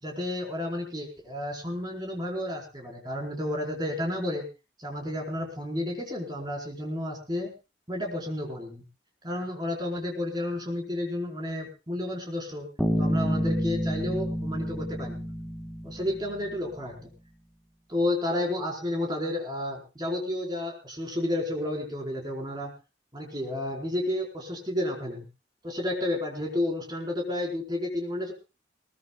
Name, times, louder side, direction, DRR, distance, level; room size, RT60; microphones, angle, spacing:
voice 1, 0.0-4.4 4.8-7.5 7.9-8.8 9.2-12.7 13.0-15.3 15.8-17.0 17.9-22.7 23.1-25.2 25.6-28.3, left 1 dB, 25° right, 0 dB, 4.8 m, -31 dB
Bass guitar, 12.8-16.6, equal, ahead, 1.8 m, -29 dB
21.0 x 20.5 x 2.4 m, 0.30 s
head